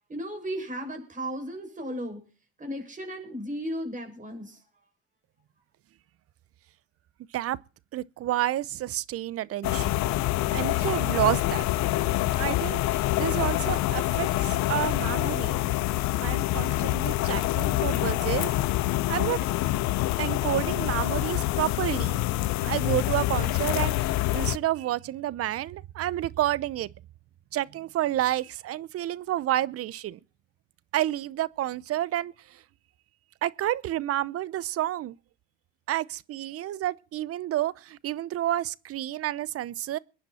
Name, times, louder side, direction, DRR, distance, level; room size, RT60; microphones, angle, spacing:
voice 1, 0.1-2.2 2.6-4.6, equal, 25° right, 6.7 m, -35 dB
voice 2, 7.9-9.9 10.5-11.6 12.3-15.6 16.2-18.5 19.1-19.4 20.2-22.2 22.6-26.9 27.5-30.2 30.9-32.6 33.4-35.2 35.9-40.0, right 13 dB, 50° right, 0.8 m, -30 dB
sound 1, 9.6-24.6, left 16 dB, 65° left, 0.9 m, -26 dB
22.0 x 10.0 x 4.3 m
supercardioid pair, 85°, 30 cm